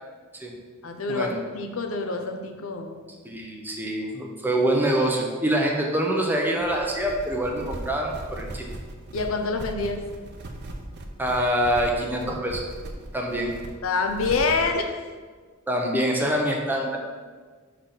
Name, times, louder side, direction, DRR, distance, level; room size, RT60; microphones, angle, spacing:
voice 1, 0.8-3.0 9.1-10.0 13.8-14.9, left 4 dB, 75° left, 5 dB, 0.7 m, -26 dB
voice 2, 3.2-8.7 11.2-12.6 13.1-13.5 15.7-17.0, right 1 dB, 10° right, 0 dB, 0.8 m, -25 dB
sound 1, 6.6-14.7, right 1 dB, 55° right, 0.7 m, -38 dB
5.1 x 4.6 x 5.9 m, 1.5 s
head